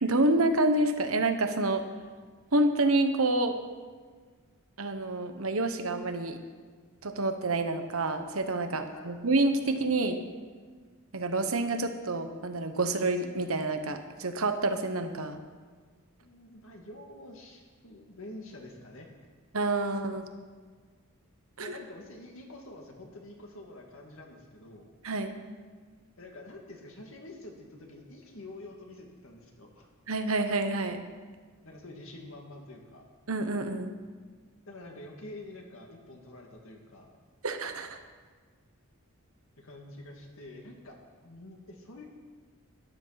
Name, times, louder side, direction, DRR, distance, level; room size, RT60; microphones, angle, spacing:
voice 1, 0.0-1.8 2.5-3.5 4.8-6.4 7.0-10.2 11.1-15.4 19.5-20.3 21.6-21.7 25.0-25.4 30.1-31.0 33.3-33.9 37.4-38.0, right 2 dB, 75° right, 7 dB, 1.2 m, -28 dB
voice 2, 8.8-9.2 16.2-19.3 21.6-24.9 26.2-29.9 31.6-33.0 34.7-37.1 39.6-42.1, left 1 dB, 65° left, 1 dB, 2.3 m, -47 dB
13.0 x 12.0 x 5.9 m, 1.5 s
head